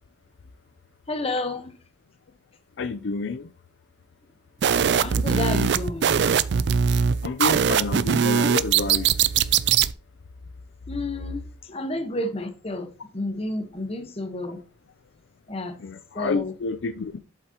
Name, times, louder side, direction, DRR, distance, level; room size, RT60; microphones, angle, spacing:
voice 1, 1.1-1.7 5.0-6.2 10.9-14.6 15.5-15.8 16.1-16.5, left 2 dB, 30° left, 1.1 m, -30 dB
voice 2, 2.8-3.5 7.2-9.1 15.8-17.1, left 4 dB, 70° left, 0.5 m, -29 dB
sound 1, 4.6-9.9, right 7 dB, 60° right, 0.4 m, -21 dB
7.9 x 7.4 x 2.9 m
head